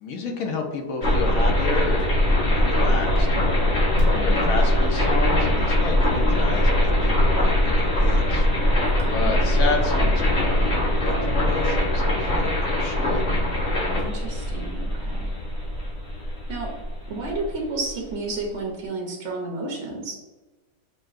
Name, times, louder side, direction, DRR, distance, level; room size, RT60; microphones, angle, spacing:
voice 1, 0.0-3.3 4.2-8.5 9.1-13.2, left 4 dB, 65° left, 2 dB, 1.0 m, -31 dB
sound 1, 1.0-17.9, left 1 dB, 45° left, 1.6 m, -21 dB
voice 2, 3.9-4.5 9.0-9.4 13.8-15.3 16.5-16.7 17.1-20.2, right 2 dB, 55° right, -2 dB, 0.9 m, -32 dB
6.4 x 2.2 x 2.4 m, 1.2 s
omnidirectional pair, 1.8 m